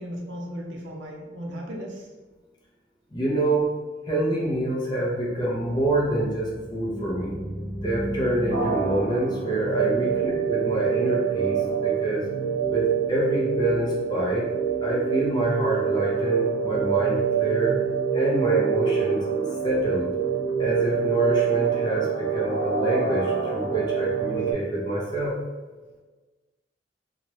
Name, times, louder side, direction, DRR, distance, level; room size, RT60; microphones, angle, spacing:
voice 1, 0.0-2.1 10.0-10.4, equal, 85° right, -1 dB, 0.6 m, -36 dB
voice 2, 3.1-3.7 4.1-7.4 7.8-12.2 12.7-14.5 14.8-17.8 18.1-19.2 19.6-20.1 20.6-25.4, right 1 dB, 25° left, -5 dB, 0.6 m, -26 dB
sound 1, 5.2-10.4, equal, 15° right, 0.7 m, -37 dB
sound 2, 8.5-24.5, right 7 dB, 75° left, 0.7 m, -25 dB
2.9 x 2.4 x 3.0 m, 1.3 s
head